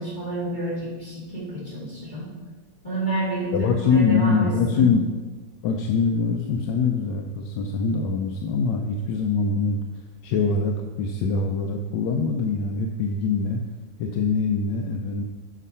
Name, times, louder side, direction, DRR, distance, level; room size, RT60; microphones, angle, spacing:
voice 1, 0.0-2.3 2.8-4.9, right 1 dB, 25° left, -9 dB, 2.6 m, -29 dB
voice 2, 3.5-5.0 5.6-9.8 10.2-13.6 14.0-15.2, left 4 dB, 85° left, 3 dB, 1.3 m, -23 dB
6.2 x 6.1 x 5.4 m, 1.4 s
omnidirectional pair, 1.9 m